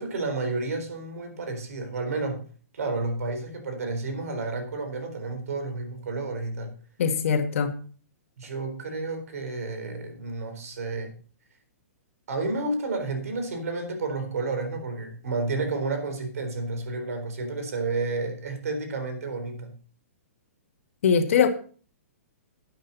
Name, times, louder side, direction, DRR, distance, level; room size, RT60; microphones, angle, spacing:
voice 1, 0.0-2.4 2.7-6.8 8.4-11.1 12.3-19.7, right 3 dB, 80° right, 4.1 m, -31 dB
voice 2, 7.0-7.7 21.0-21.5, left 6 dB, 65° left, 1.9 m, -21 dB
11.5 x 9.1 x 4.1 m
hypercardioid pair, 160°, 8 cm